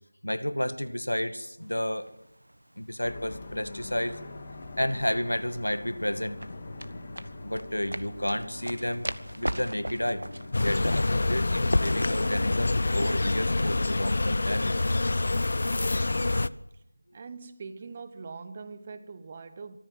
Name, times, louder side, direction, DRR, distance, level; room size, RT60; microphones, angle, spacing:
voice 1, 0.2-2.1 2.8-4.2 4.8-6.4 7.4-9.1 9.4-10.2 10.6-14.8, left 1 dB, 85° left, 2.0 m, -31 dB
sound 1, 1.6-10.5, right 1 dB, 80° right, 1.3 m, -41 dB
sound 2, 3.0-13.9, left 2 dB, 25° left, 2.8 m, -44 dB
sound 3, 10.5-16.5, left 2 dB, 50° left, 0.7 m, -26 dB
voice 2, 17.1-19.8, right 4 dB, 25° right, 1.1 m, -42 dB
24.5 x 14.5 x 7.9 m
figure-of-eight pair, 170°, 0 cm